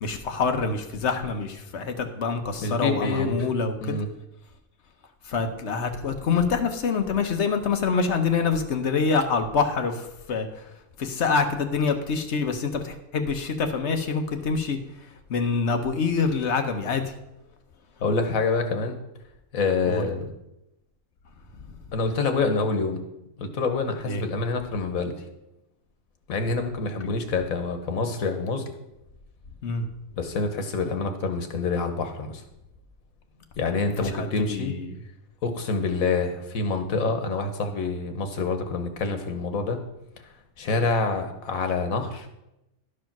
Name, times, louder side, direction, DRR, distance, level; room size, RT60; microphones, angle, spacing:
voice 1, 0.0-4.0 5.2-10.7 11.0-17.1 19.8-20.0 21.7-21.8 24.0-24.2 29.6-29.9 34.0-35.0, left 5 dB, 60° left, 6 dB, 1.2 m, -26 dB
voice 2, 2.6-3.3 3.8-4.0 18.0-19.0 19.5-20.3 21.9-23.0 23.4-25.1 26.3-28.7 30.2-32.4 33.6-34.7 35.4-39.8 40.6-42.3, left 4 dB, 90° left, 6 dB, 1.5 m, -26 dB
11.5 x 5.0 x 5.9 m, 0.90 s
omnidirectional pair, 1.4 m